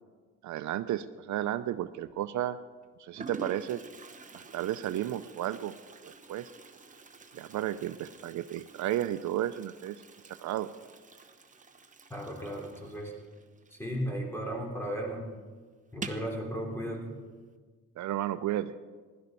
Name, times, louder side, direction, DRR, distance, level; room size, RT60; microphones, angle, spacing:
voice 1, 0.4-2.6 3.0-3.8 4.3-5.7 6.0-6.5 7.3-10.0 10.4-10.7 18.0-18.7, right 12 dB, 70° right, 12 dB, 0.6 m, -33 dB
Toilet flush, 1.6-2.1 2.8-2.9 3.2-14.5 14.7-14.8 15.1-15.2 15.9-16.4, right 4 dB, 25° right, 1.1 m, -48 dB
voice 2, 12.1-13.1 13.7-15.3 15.9-17.1, equal, 10° left, 0 dB, 3.7 m, -35 dB
16.5 x 12.0 x 5.4 m, 1.5 s
cardioid pair, 90°, 30 cm